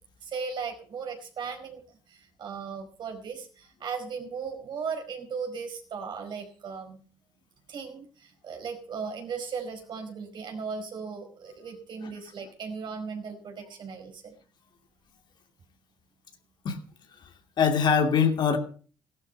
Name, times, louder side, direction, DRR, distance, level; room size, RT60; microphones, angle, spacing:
voice 1, 0.2-1.8 2.1-7.0 7.7-14.3, right 5 dB, 55° right, 4 dB, 4.9 m, -37 dB
voice 2, 17.6-18.6, left 6 dB, 55° left, 6 dB, 2.6 m, -23 dB
15.5 x 12.0 x 5.3 m, 0.41 s
supercardioid pair, 80°, 9 cm